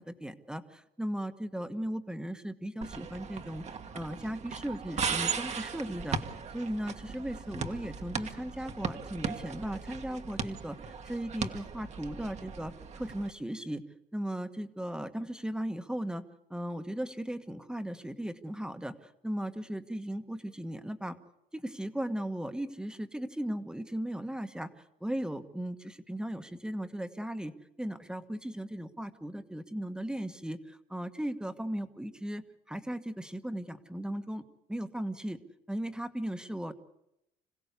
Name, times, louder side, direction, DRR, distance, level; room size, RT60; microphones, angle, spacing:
voice 1, 0.0-3.6 3.9-6.2 6.5-13.8 14.1-16.2 16.5-21.2 21.5-24.7 25.0-27.5 27.8-34.4 34.7-35.4 35.7-36.7, right 1 dB, 5° right, 8 dB, 1.3 m, -37 dB
sound 1, 2.8-13.3, right 6 dB, 40° right, 1.5 m, -38 dB
26.5 x 16.5 x 8.3 m, 0.84 s
cardioid pair, 110°, 17 cm